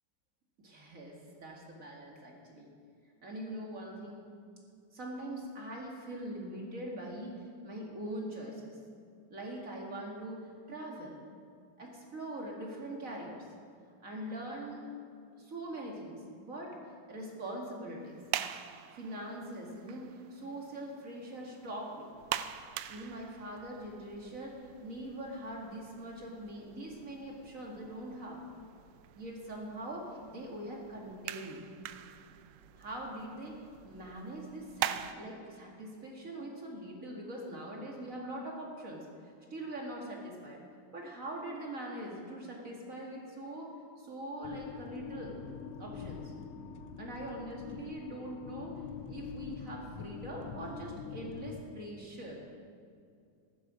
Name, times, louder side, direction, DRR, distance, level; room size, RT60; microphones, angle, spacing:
voice 1, 0.6-2.7 3.2-4.2 4.9-8.8 9.3-11.2 11.8-13.5 14.0-14.8 15.4-16.8 17.1-18.2 18.9-22.1 22.9-28.4 29.2-31.6 32.8-40.6 40.9-43.7 44.0-45.4 45.8-46.3 47.0-52.4, right 1 dB, 30° right, -1 dB, 1.9 m, -42 dB
sound 1, 18.0-35.1, right 12 dB, 80° right, 1.5 m, -44 dB
sound 2, 44.4-51.6, left 6 dB, 75° left, 1.6 m, -44 dB
15.5 x 11.5 x 5.0 m, 2.4 s
omnidirectional pair, 3.6 m